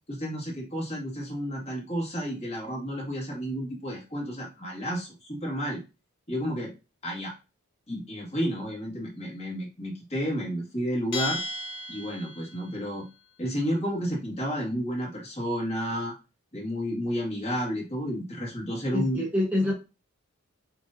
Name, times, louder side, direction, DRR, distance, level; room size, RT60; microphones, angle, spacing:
voice 1, 0.1-5.8 6.3-6.7 7.0-7.3 7.9-11.4 11.9-13.0 13.4-16.1 16.5-19.2, equal, 30° left, -3 dB, 1.8 m, -31 dB
Bell, 11.1-12.7, left 1 dB, 60° left, 1.1 m, -35 dB
voice 2, 18.9-19.7, left 1 dB, 10° right, -4 dB, 0.9 m, -26 dB
6.5 x 2.7 x 2.6 m, 0.29 s
head